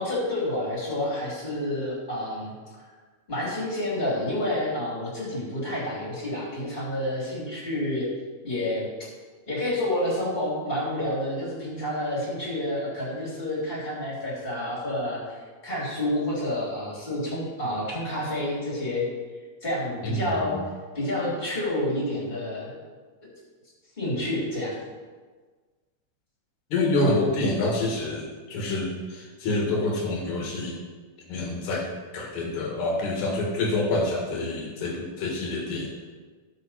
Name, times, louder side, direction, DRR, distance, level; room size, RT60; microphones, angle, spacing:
voice 1, 0.0-2.9 3.3-8.1 8.4-9.1 9.5-19.0 19.6-20.6 20.9-22.7 23.2-23.3 24.0-24.7, left 1 dB, 15° left, -5 dB, 2.2 m, -29 dB
voice 2, 20.0-20.6 26.7-30.8 31.3-35.9, left 2 dB, 55° left, -2 dB, 3.0 m, -27 dB
15.5 x 6.2 x 4.2 m, 1.4 s
omnidirectional pair, 4.5 m